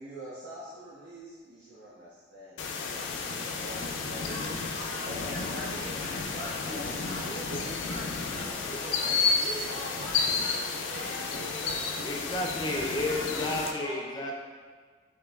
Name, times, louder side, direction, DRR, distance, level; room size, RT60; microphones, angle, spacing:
voice 1, 0.0-4.4 5.0-6.8, equal, 85° right, -9 dB, 0.8 m, -45 dB
sound 1, 2.6-13.7, left 4 dB, 85° left, 0.4 m, -32 dB
voice 2, 4.2-12.1 12.7-14.0, right 1 dB, 50° right, -5 dB, 0.8 m, -42 dB
voice 3, 12.0-14.3, left 1 dB, 20° left, 0 dB, 0.4 m, -31 dB
5.1 x 3.0 x 2.3 m, 1.5 s
head